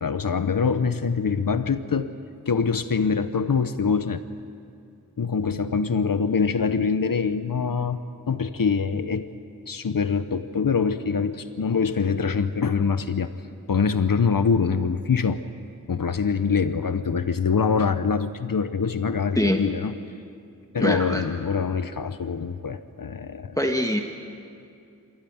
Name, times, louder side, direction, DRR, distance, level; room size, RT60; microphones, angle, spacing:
voice 1, 0.0-2.1 2.5-4.2 5.2-8.0 8.3-9.3 9.7-13.3 13.7-15.4 15.9-19.9 20.7-23.6, left 5 dB, 85° left, 11 dB, 0.8 m, -24 dB
voice 2, 20.8-21.2 23.6-24.0, left 1 dB, 10° left, 3 dB, 1.5 m, -23 dB
26.5 x 16.5 x 9.4 m, 2.4 s
wide cardioid pair, 55°, 33 cm